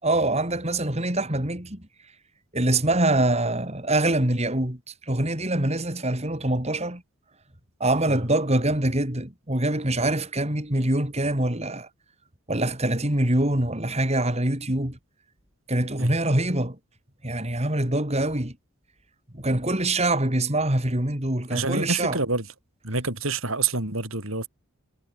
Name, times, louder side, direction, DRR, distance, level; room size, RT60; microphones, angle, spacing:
voice 1, 0.0-1.9 2.5-7.0 7.8-11.9 12.5-15.0 15.7-16.8 17.2-18.6 19.3-22.2, right 1 dB, 30° right, 3.4 m, -24 dB
voice 2, 21.5-22.5 22.8-24.5, right 3 dB, 65° right, 6.4 m, -27 dB
head